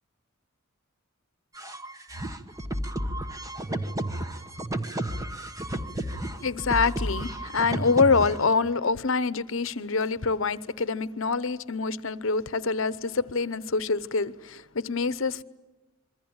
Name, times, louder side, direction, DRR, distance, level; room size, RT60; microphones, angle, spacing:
sound 1, 1.6-8.5, right 1 dB, 15° right, 1.3 m, -32 dB
voice 1, 6.4-15.4, left 4 dB, 60° left, 0.9 m, -26 dB
26.5 x 24.0 x 8.8 m
head